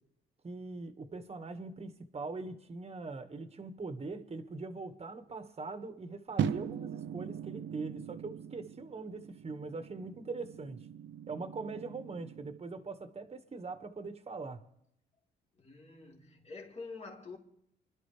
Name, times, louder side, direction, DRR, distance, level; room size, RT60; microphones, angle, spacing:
voice 1, 0.4-10.9 11.3-14.7, right 3 dB, 30° right, 1.7 m, -42 dB
sound 1, 6.4-12.6, right 8 dB, 70° right, 0.9 m, -40 dB
voice 2, 15.5-17.4, left 4 dB, 35° left, 3.7 m, -47 dB
25.5 x 12.0 x 3.4 m
cardioid pair, 90°, 20 cm